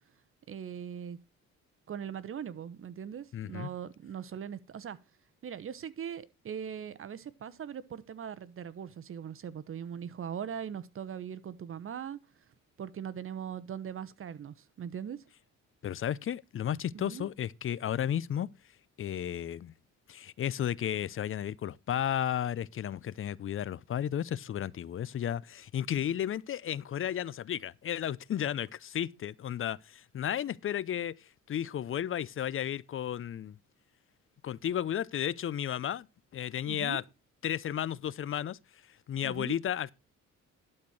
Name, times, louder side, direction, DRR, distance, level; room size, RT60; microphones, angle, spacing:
voice 1, 0.5-1.2 1.9-5.0 5.4-12.2 12.8-15.2 16.9-17.3 36.7-37.0 39.2-39.6, right 8 dB, 45° right, 1.0 m, -40 dB
voice 2, 3.3-3.7 15.8-18.5 19.0-19.7 20.1-33.6 34.4-36.1 36.3-37.0 37.4-38.6 39.1-39.9, left 10 dB, 45° left, 0.5 m, -33 dB
12.0 x 4.4 x 6.3 m
cardioid pair, 90°, 30 cm